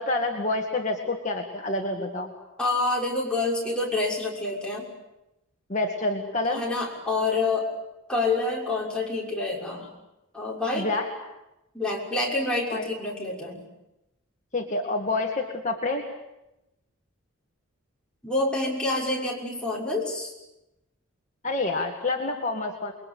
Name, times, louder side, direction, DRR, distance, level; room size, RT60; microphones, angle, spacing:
voice 1, 0.0-2.3 5.7-6.6 10.7-11.1 12.7-12.9 14.5-16.1 21.4-22.9, left 2 dB, 35° left, 1 dB, 2.2 m, -28 dB
voice 2, 2.6-4.9 6.5-7.7 8.1-9.9 10.3-10.9 11.7-13.6 18.2-20.3, left 2 dB, 5° left, -3 dB, 6.3 m, -27 dB
28.5 x 22.5 x 8.6 m, 0.92 s
head